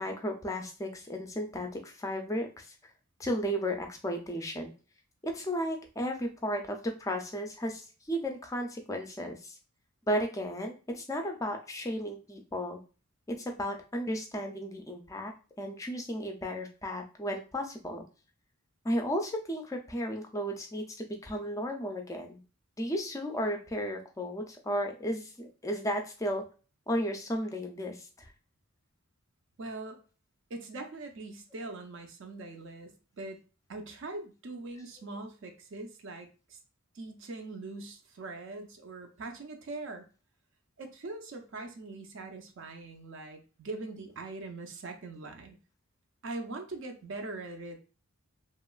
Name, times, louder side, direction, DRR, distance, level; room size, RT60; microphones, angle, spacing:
voice 1, 0.0-2.7 3.2-4.7 5.2-9.6 10.1-12.8 13.3-15.3 15.6-18.0 18.8-22.4 22.8-26.4 26.9-28.3, equal, 15° left, 3 dB, 0.3 m, -34 dB
voice 2, 29.6-30.0 30.5-33.4 33.7-36.6 36.9-40.1 40.8-45.6 46.2-47.8, right 2 dB, 55° right, 4 dB, 0.4 m, -42 dB
3.0 x 2.2 x 2.3 m, 0.35 s
head